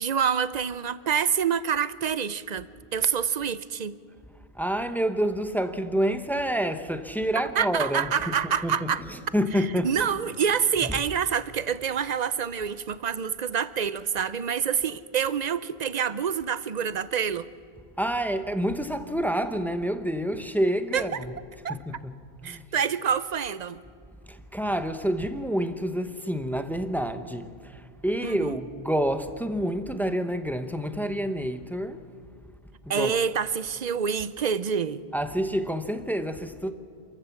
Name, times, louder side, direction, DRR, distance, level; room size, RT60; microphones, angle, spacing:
voice 1, 0.0-4.0 7.6-9.0 9.6-17.5 20.9-21.0 21.6-21.7 22.4-23.8 28.2-28.5 32.9-35.0, right 7 dB, 50° right, 0.7 m, -27 dB
voice 2, 4.5-10.0 10.8-11.0 18.0-21.3 21.7-22.7 24.2-32.1 32.8-33.2 35.1-36.7, equal, ahead, 0.8 m, -28 dB
27.5 x 14.5 x 7.2 m
omnidirectional pair, 1.1 m